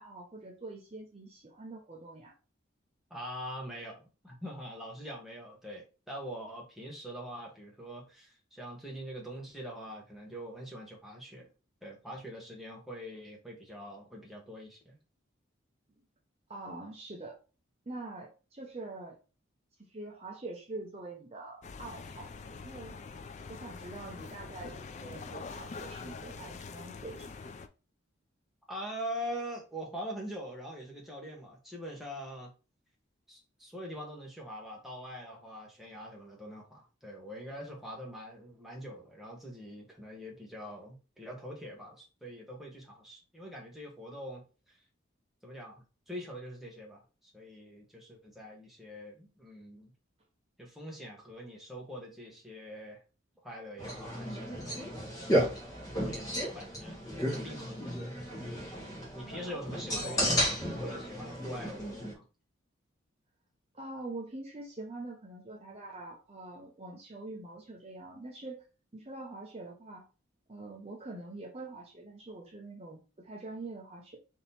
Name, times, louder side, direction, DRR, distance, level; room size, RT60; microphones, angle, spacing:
voice 1, 0.0-2.3 16.5-17.4 17.9-19.2 19.9-22.9 23.5-27.5 59.9-60.2 63.7-68.6 68.9-70.0 70.5-74.2, right 2 dB, 30° right, -1 dB, 0.7 m, -44 dB
voice 2, 3.1-11.5 11.8-15.0 28.7-32.5 33.3-44.8 45.4-49.9 50.6-53.0 53.4-54.9 55.6-58.3 59.1-62.2, equal, ahead, -2 dB, 1.1 m, -44 dB
sound 1, 21.6-27.7, left 4 dB, 35° left, 0.3 m, -44 dB
sound 2, 53.8-62.1, equal, 15° left, 1.2 m, -33 dB
3.6 x 2.9 x 4.2 m, 0.33 s
head